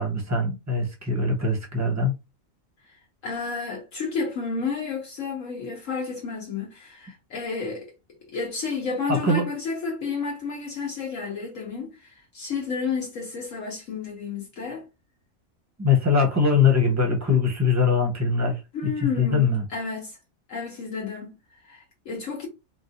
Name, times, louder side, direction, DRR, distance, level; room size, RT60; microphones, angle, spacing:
voice 1, 0.0-2.1 9.1-9.4 15.8-19.6, left 4 dB, 15° right, 0.7 m, -22 dB
voice 2, 2.9-7.9 8.3-14.9 18.7-20.2 20.5-22.5, left 5 dB, 70° left, 1.2 m, -31 dB
4.0 x 2.3 x 2.6 m
omnidirectional pair, 1.4 m